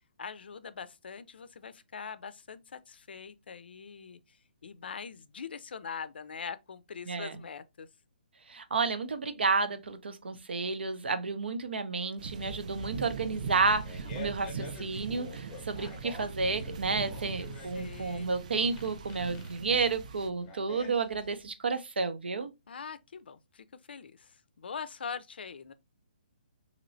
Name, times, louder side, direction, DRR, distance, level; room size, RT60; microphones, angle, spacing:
voice 1, 0.2-4.2 4.6-7.9 17.7-18.3 22.7-25.7, left 6 dB, 75° left, 0.4 m, -42 dB
voice 2, 7.1-7.4 8.5-22.5, right 4 dB, 85° right, 0.6 m, -31 dB
sound 1, 12.2-20.3, right 5 dB, 45° right, 0.4 m, -41 dB
Fart, 13.8-21.5, left 3 dB, 15° left, 0.6 m, -48 dB
3.0 x 2.9 x 2.5 m
hypercardioid pair, 160°, 6 cm